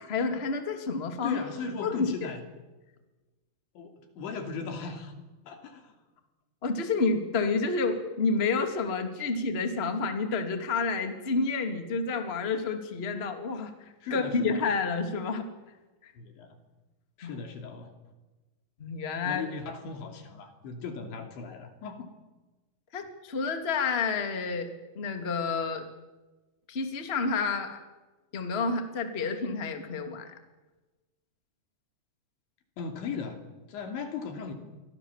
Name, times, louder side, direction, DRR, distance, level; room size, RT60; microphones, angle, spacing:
voice 1, 0.0-1.4 1.8-2.3 6.6-13.7 14.1-15.5 16.0-16.1 17.2-17.4 18.8-19.4 22.9-24.7 25.0-25.8 26.7-27.8 28.3-30.3, left 4 dB, 20° left, 6 dB, 1.8 m, -29 dB
voice 2, 1.1-2.4 3.8-5.1 5.5-5.9 14.0-14.6 16.2-16.6 17.2-17.9 19.3-22.1 32.8-34.5, left 5 dB, 85° left, 6 dB, 5.3 m, -38 dB
29.5 x 24.0 x 7.4 m, 1.2 s
omnidirectional pair, 5.1 m